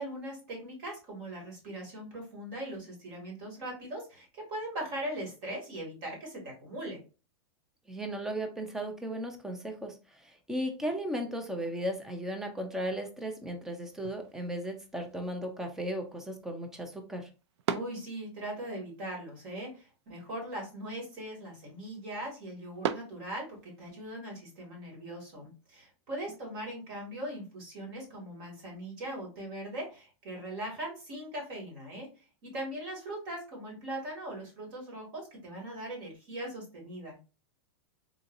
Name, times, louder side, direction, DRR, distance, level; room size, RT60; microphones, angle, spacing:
voice 1, 0.0-7.0 17.7-37.2, right 1 dB, 45° right, -1 dB, 2.0 m, -40 dB
voice 2, 7.9-17.3, equal, 5° right, 5 dB, 0.4 m, -36 dB
sound 1, 13.9-23.9, right 8 dB, 75° right, 0.4 m, -43 dB
3.8 x 2.7 x 2.5 m, 0.33 s
supercardioid pair, 165°, 15 cm